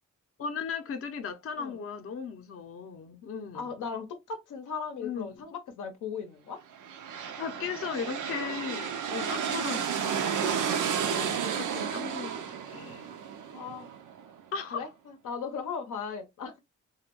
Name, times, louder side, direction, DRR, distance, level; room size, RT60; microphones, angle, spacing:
voice 1, 0.4-3.8 5.0-5.5 7.4-13.1 14.5-14.9, left 6 dB, 50° left, 0.5 m, -37 dB
voice 2, 3.5-6.6 13.5-13.9 14.7-16.6, left 6 dB, 85° left, 0.7 m, -37 dB
sound 1, 6.7-14.4, right 7 dB, 80° right, 0.5 m, -32 dB
2.2 x 2.1 x 2.9 m
cardioid pair, 90°, 30 cm